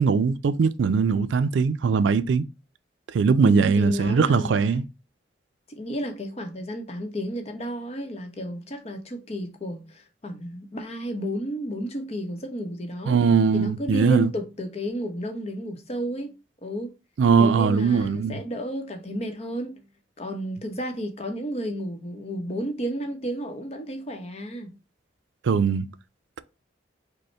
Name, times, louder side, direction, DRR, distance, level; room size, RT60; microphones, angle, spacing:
voice 1, 0.0-2.4 3.1-4.8 13.1-14.3 17.2-18.4 25.4-25.9, right 5 dB, 80° right, 0.4 m, -20 dB
voice 2, 3.4-4.5 5.7-13.2 13.5-16.3 16.6-16.9 17.4-19.8 20.2-24.7, equal, 35° left, 0.8 m, -32 dB
5.2 x 2.1 x 4.3 m
head